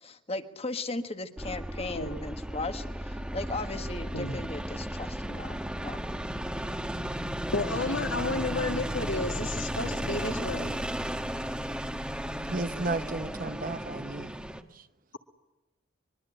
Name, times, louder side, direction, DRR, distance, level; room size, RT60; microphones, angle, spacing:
voice 1, 0.0-6.0, left 2 dB, 30° left, 1.6 m, -37 dB
sound 1, 1.4-14.6, equal, 5° right, 1.3 m, -34 dB
voice 2, 7.5-10.8, left 2 dB, 65° left, 2.2 m, -32 dB
voice 3, 12.5-14.3 14.7-14.8, right 3 dB, 45° right, 1.0 m, -33 dB
24.5 x 23.0 x 8.7 m
head